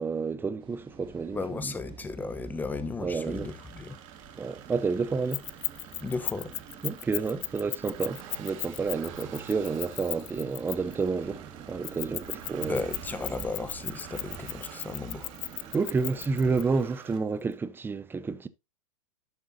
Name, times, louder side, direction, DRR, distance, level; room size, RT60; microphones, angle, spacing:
voice 1, 0.0-1.7 3.0-3.5 4.3-5.4 6.8-11.4 11.7-12.8 15.7-18.5, right 4 dB, 10° right, 0.6 m, -30 dB
sound 1, 0.6-16.6, right 6 dB, 25° right, 2.1 m, -49 dB
voice 2, 1.3-4.0 6.0-6.5 12.6-15.3, left 3 dB, 10° left, 0.9 m, -35 dB
sound 2, 3.1-17.2, right 10 dB, 60° right, 2.0 m, -48 dB
Keys jangling, 5.3-11.0 11.8-16.6, left 22 dB, 55° left, 0.4 m, -36 dB
11.0 x 7.8 x 2.8 m
hypercardioid pair, 120°, 19 cm